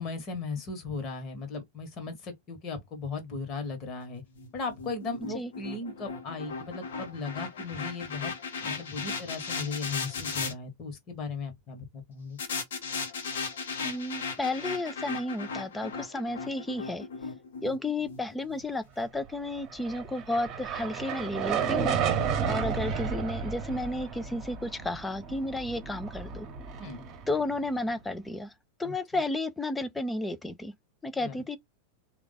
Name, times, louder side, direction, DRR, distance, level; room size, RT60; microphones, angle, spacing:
voice 1, 0.0-4.2 4.5-8.3 8.6-12.4 26.8-27.0 28.8-28.9 31.1-31.4, left 4 dB, 35° left, 1.4 m, -37 dB
sound 1, 4.3-10.5 12.4-18.6, left 5 dB, 60° left, 1.1 m, -37 dB
voice 2, 13.8-17.1 17.6-22.0 22.5-26.5 27.3-28.5 28.8-30.7 31.0-31.6, left 2 dB, 10° left, 0.6 m, -32 dB
sound 2, 19.6-28.0, right 7 dB, 35° right, 1.1 m, -32 dB
3.4 x 2.4 x 3.9 m
figure-of-eight pair, 90°, 0 cm